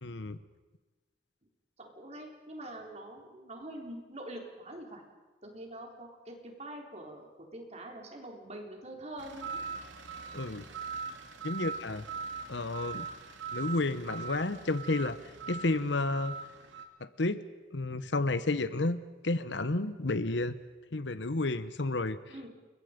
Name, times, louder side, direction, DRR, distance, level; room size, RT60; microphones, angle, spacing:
voice 1, 0.0-0.4 10.3-10.6 11.4-12.1 12.5-13.1 13.5-15.2 15.5-16.4 17.0-17.4 17.7-20.5 20.9-22.2, left 2 dB, 70° left, 13 dB, 1.1 m, -31 dB
voice 2, 1.8-5.0 5.4-9.6 22.3-22.5, right 1 dB, 35° right, 1 dB, 4.0 m, -45 dB
sound 1, 9.2-16.8, right 5 dB, 85° right, 2.7 m, -41 dB
29.5 x 23.0 x 5.3 m, 1.2 s
head